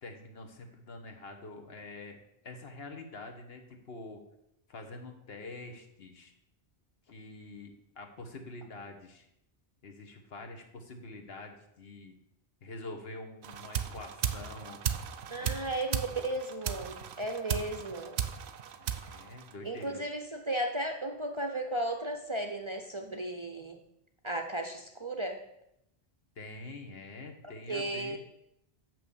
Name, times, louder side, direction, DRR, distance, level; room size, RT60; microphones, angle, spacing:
voice 1, 0.0-2.2 2.4-4.2 4.7-6.3 7.1-9.3 9.8-12.1 12.6-14.8 15.4-15.6 18.8-20.0 26.4-28.2, left 2 dB, 70° left, 4 dB, 1.3 m, -46 dB
sound 1, 13.4-20.0, right 8 dB, 80° right, 0.9 m, -36 dB
voice 2, 15.3-18.2 19.6-23.8 24.2-25.4 27.7-28.2, right 1 dB, 35° right, 5 dB, 0.5 m, -35 dB
6.1 x 6.0 x 7.0 m, 0.81 s
omnidirectional pair, 1.1 m